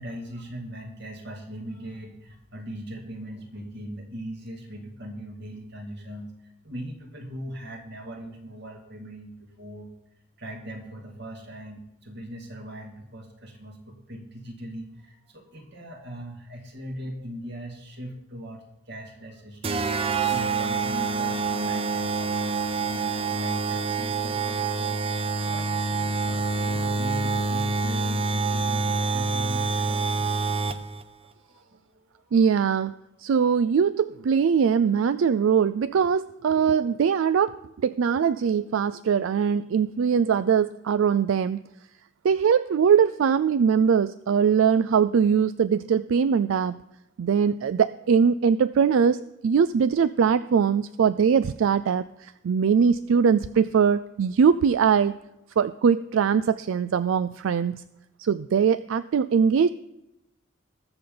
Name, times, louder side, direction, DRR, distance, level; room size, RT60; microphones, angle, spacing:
voice 1, 0.0-6.3 6.6-9.9 10.4-25.0 25.4-30.3 31.4-32.3, equal, 55° right, 1 dB, 2.2 m, -40 dB
sound 1, 19.6-31.0, right 4 dB, 30° right, 0.6 m, -26 dB
voice 2, 32.3-32.9 33.2-41.6 42.2-46.8 47.2-55.1 55.6-57.8 58.2-59.7, right 6 dB, 80° right, 14 dB, 0.3 m, -22 dB
21.0 x 7.0 x 3.9 m, 0.89 s
head